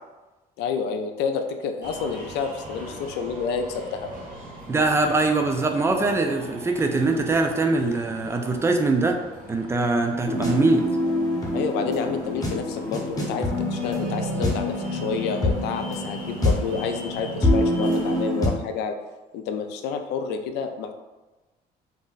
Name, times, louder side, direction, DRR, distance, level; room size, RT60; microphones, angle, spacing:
voice 1, 0.6-4.1 11.5-19.0 19.3-20.9, left 5 dB, 80° left, 6 dB, 0.4 m, -29 dB
sound 1, 1.8-18.2, right 1 dB, 50° right, 1.0 m, -41 dB
voice 2, 4.7-9.2 9.5-10.9, right 3 dB, 15° right, 4 dB, 0.4 m, -22 dB
sound 2, 10.3-18.5, left 1 dB, 20° left, 0.8 m, -26 dB
2.6 x 2.1 x 3.8 m, 1.1 s
cardioid pair, 110°, 17 cm